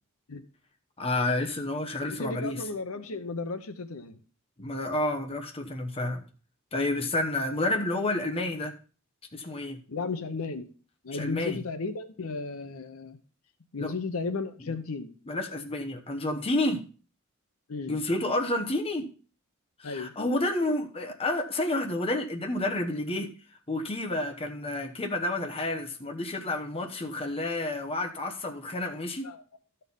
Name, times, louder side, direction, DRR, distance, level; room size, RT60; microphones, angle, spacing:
voice 1, 1.0-2.6 4.6-6.2 6.7-8.7 9.3-9.8 11.1-11.6 13.8-13.9 14.6-14.7 15.3-16.8 17.9-19.1 19.8-23.3 23.7-29.3, left 2 dB, 25° left, 1.0 m, -30 dB
voice 2, 2.1-4.2 9.9-10.7 11.0-13.2 13.7-15.1 17.7-18.0 19.8-20.1 29.2-29.4, left 3 dB, 75° left, 0.8 m, -34 dB
12.5 x 4.4 x 5.3 m
head